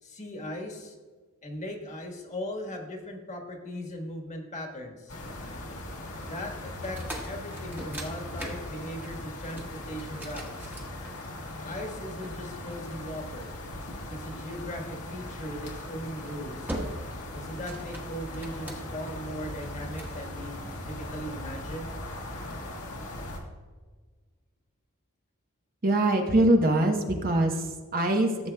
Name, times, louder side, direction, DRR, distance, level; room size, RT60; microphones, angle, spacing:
voice 1, 0.0-0.9 1.4-5.1 6.3-10.8 11.6-13.5 14.1-16.7 17.3-21.9, equal, 35° left, 2 dB, 1.4 m, -39 dB
sound 1, 5.1-23.4, left 1 dB, 85° left, 1.6 m, -39 dB
sound 2, 6.8-11.5 12.2-13.5 15.3-15.6 16.1-16.3 16.7-17.2 17.5-19.1 19.6-20.2, right 1 dB, 10° right, 1.2 m, -40 dB
voice 2, 25.8-28.5, right 1 dB, 40° right, 3 dB, 0.9 m, -23 dB
15.0 x 7.7 x 2.2 m, 1.4 s
head